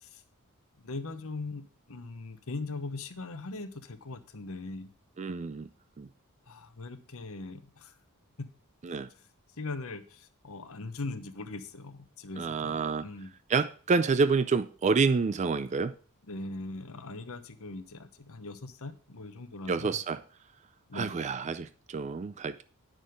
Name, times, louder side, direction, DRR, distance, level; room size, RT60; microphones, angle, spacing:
voice 1, 0.8-4.9 6.5-7.9 9.2-9.3 9.6-13.3 16.2-20.0 20.9-21.2, left 3 dB, 70° left, 1.0 m, -40 dB
voice 2, 5.2-5.7 6.0-6.1 8.8-9.1 12.4-13.1 13.5-15.9 19.7-20.2 20.9-22.6, right 4 dB, 30° right, 0.4 m, -28 dB
9.5 x 6.4 x 5.0 m
head